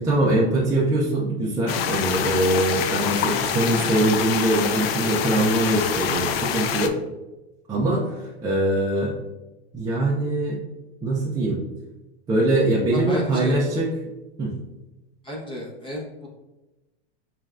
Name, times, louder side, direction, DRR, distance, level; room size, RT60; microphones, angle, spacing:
voice 1, 0.0-6.9 7.7-9.2 9.7-10.6 11.0-11.6 12.3-13.9 14.4-14.5, right 1 dB, 10° right, -6 dB, 0.5 m, -22 dB
sound 1, 1.7-6.9, left 8 dB, 65° left, 0.5 m, -26 dB
voice 2, 12.9-13.6 15.2-16.3, equal, 15° left, -3 dB, 0.8 m, -33 dB
4.5 x 3.3 x 2.4 m, 1.0 s
supercardioid pair, 135°, 33 cm